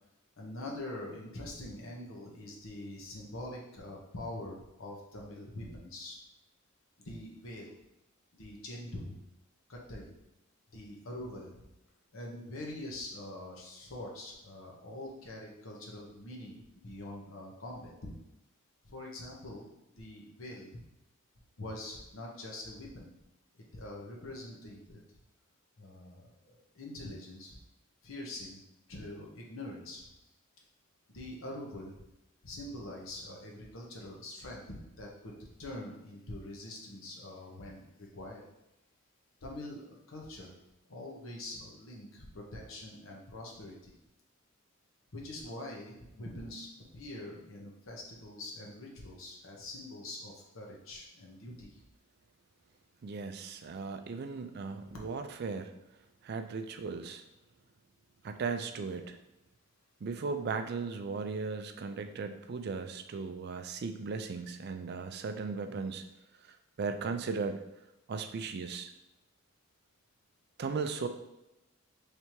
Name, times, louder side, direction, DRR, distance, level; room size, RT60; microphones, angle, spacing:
voice 1, 0.4-6.2 7.0-7.8 8.3-9.1 9.7-10.1 10.7-11.6 12.1-18.1 18.8-19.7 20.0-20.8 21.6-23.1 23.5-25.0 25.8-27.6 28.0-28.6 28.9-30.1 31.1-32.0 32.4-38.4 39.4-40.5 40.9-43.9 45.1-51.8 54.9-55.0, left 1 dB, 70° left, -2 dB, 1.0 m, -44 dB
voice 2, 53.0-55.7 56.2-57.2 58.2-59.2 60.0-66.0 66.8-67.6 68.1-68.9 70.6-71.1, right 4 dB, 50° right, 7 dB, 0.4 m, -37 dB
3.3 x 2.9 x 4.5 m, 0.91 s
head